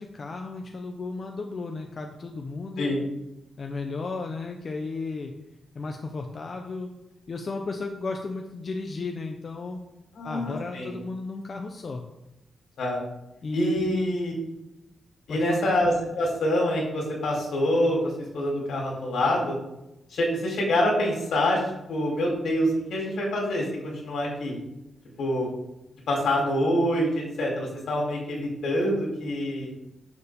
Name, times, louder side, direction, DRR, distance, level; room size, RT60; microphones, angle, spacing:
voice 1, 0.0-2.9 3.6-5.3 5.7-6.9 7.3-9.8 10.2-12.0 13.4-14.0 15.3-15.6, left 3 dB, 35° left, 3 dB, 0.8 m, -34 dB
voice 2, 10.2-10.9 12.8-13.0 13.5-14.3 15.3-19.6 20.1-24.6 25.2-25.5 26.1-29.7, left 1 dB, 80° left, -1 dB, 3.9 m, -26 dB
11.0 x 6.9 x 3.6 m, 0.89 s
wide cardioid pair, 170°, 0 cm